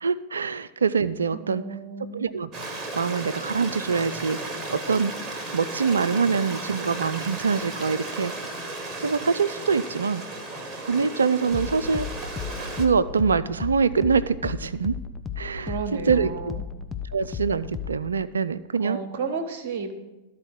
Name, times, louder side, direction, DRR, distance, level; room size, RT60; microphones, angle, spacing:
voice 1, 0.0-1.6 2.1-2.5 2.9-4.4 4.7-5.1 5.5-8.3 9.0-10.2 10.8-12.1 12.7-15.0 15.4-15.8 16.1-16.5 17.1-19.0, right 5 dB, 70° right, 17 dB, 0.3 m, -24 dB
voice 2, 1.4-2.3 15.6-16.6 18.8-19.9, right 5 dB, 50° right, 8 dB, 1.1 m, -32 dB
Stream, 2.5-12.9, right 2 dB, 25° right, 1.4 m, -35 dB
sound 1, 9.6-18.2, left 7 dB, 15° left, 0.6 m, -36 dB
13.0 x 4.4 x 6.4 m, 1.0 s
figure-of-eight pair, 90°, 0 cm